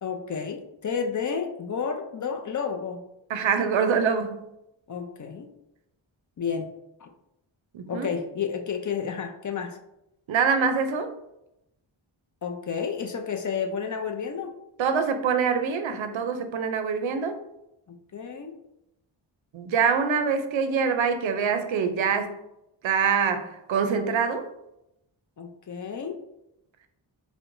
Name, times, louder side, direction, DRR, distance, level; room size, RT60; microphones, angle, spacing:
voice 1, 0.0-3.0 4.9-5.5 6.4-6.7 7.0-7.1 7.9-9.8 12.4-14.5 17.9-18.6 25.4-26.2, left 6 dB, 40° left, 4 dB, 0.4 m, -31 dB
voice 2, 3.3-4.4 7.7-8.1 10.3-11.2 14.8-17.4 19.5-22.3 22.8-24.5, right 6 dB, 70° right, 8 dB, 0.5 m, -25 dB
4.4 x 2.2 x 2.5 m, 0.85 s
cardioid pair, 60°, 49 cm